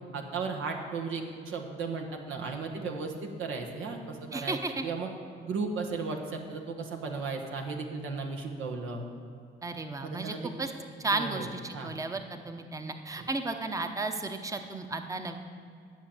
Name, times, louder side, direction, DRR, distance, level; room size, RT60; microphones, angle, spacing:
voice 1, 0.1-5.1 5.5-9.0 10.0-10.5 11.1-12.0 13.2-13.3, right 4 dB, 90° right, 3 dB, 1.4 m, -35 dB
voice 2, 4.3-4.8 9.6-10.7 11.0-15.4, right 3 dB, 15° right, 7 dB, 0.8 m, -34 dB
10.5 x 5.9 x 8.7 m, 2.4 s
cardioid pair, 90°, 20 cm